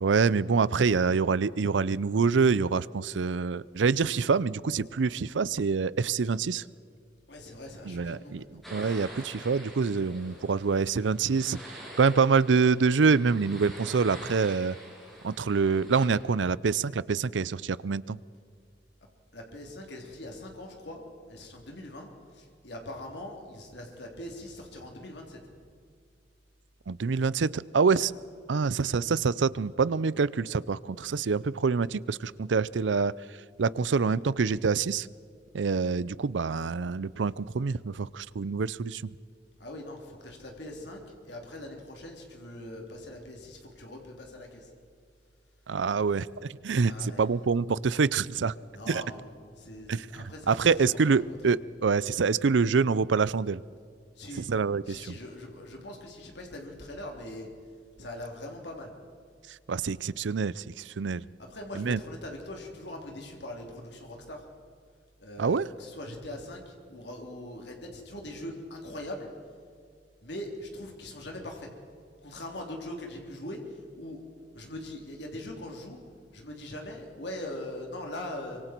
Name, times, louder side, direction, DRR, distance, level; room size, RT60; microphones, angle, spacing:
voice 1, 0.0-6.6 7.8-14.8 15.2-18.2 26.9-28.1 28.5-33.1 33.6-35.1 35.5-39.1 45.7-46.3 46.6-48.5 48.9-49.0 49.9-53.6 54.4-55.1 59.7-61.3 61.7-62.0 65.4-65.7, right 5 dB, 90° right, 19 dB, 0.5 m, -26 dB
voice 2, 7.3-8.6 10.1-10.5 19.3-22.1 22.3-25.4 27.8-28.0 39.6-44.7 46.8-47.2 48.7-50.7 51.1-51.4 54.2-54.5 54.9-57.5 58.0-58.9 61.4-64.4 65.2-69.3 70.2-71.7 72.2-74.2 74.5-76.0 76.3-78.6, left 1 dB, 70° left, 1 dB, 3.4 m, -41 dB
sound 1, 8.6-16.1, right 1 dB, ahead, 6.6 m, -46 dB
25.0 x 24.0 x 4.6 m, 2.3 s
head